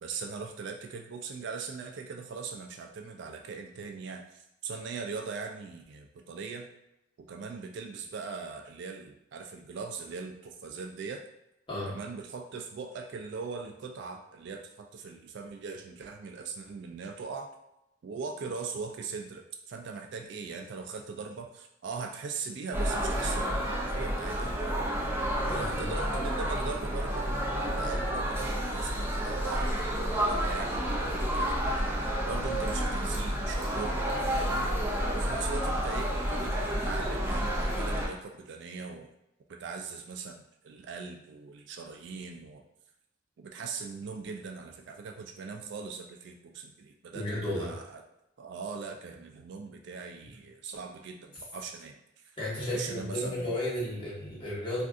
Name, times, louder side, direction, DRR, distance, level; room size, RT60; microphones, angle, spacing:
voice 1, 0.0-6.7 7.2-11.2 11.8-17.5 18.0-24.8 25.4-27.4 27.7-31.6 32.2-34.8 35.1-39.1 39.5-42.6 43.4-48.0 48.4-52.3 52.7-53.5, right 5 dB, 65° right, 4 dB, 0.3 m, -40 dB
sound 1, 22.7-38.1, equal, 10° right, 0.5 m, -30 dB
voice 2, 25.5-25.9 36.7-36.8 47.1-47.7 52.4-54.8, left 1 dB, 25° left, -8 dB, 1.2 m, -33 dB
2.5 x 2.3 x 3.6 m, 0.88 s
head